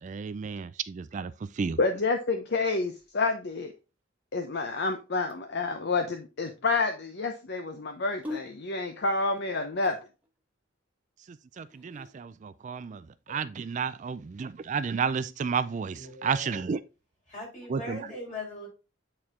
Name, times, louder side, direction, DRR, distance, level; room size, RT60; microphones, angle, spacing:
voice 1, 0.0-1.8 11.6-13.0 13.3-16.8 17.7-18.1, right 6 dB, 40° right, 0.3 m, -32 dB
voice 2, 1.8-3.7 4.3-10.0, left 3 dB, 55° left, 0.7 m, -29 dB
sound 1, 2.9-3.7 4.6-5.7 7.9-10.4 11.5-12.1, left 2 dB, 10° right, 1.4 m, -44 dB
voice 3, 15.9-16.6 17.3-18.7, left 2 dB, 40° left, 4.3 m, -40 dB
8.5 x 4.4 x 3.6 m
head